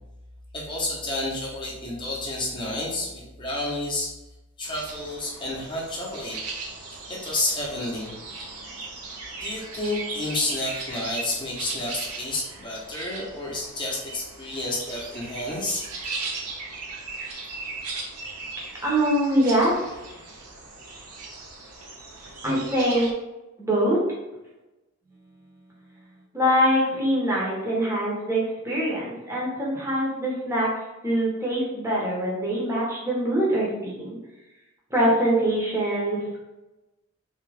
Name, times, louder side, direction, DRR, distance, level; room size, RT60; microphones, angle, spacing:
voice 1, 0.5-4.1 4.6-6.4 6.9-8.1 9.4-15.9, left 2 dB, 20° left, -4 dB, 0.8 m, -30 dB
sound 1, 4.6-23.1, right 3 dB, 90° right, 0.8 m, -38 dB
voice 2, 18.8-20.1 22.4-23.1 23.6-24.0 26.3-30.7 31.0-34.2 34.9-36.4, equal, 10° right, -5 dB, 0.9 m, -24 dB
3.6 x 2.9 x 3.3 m, 1.0 s
head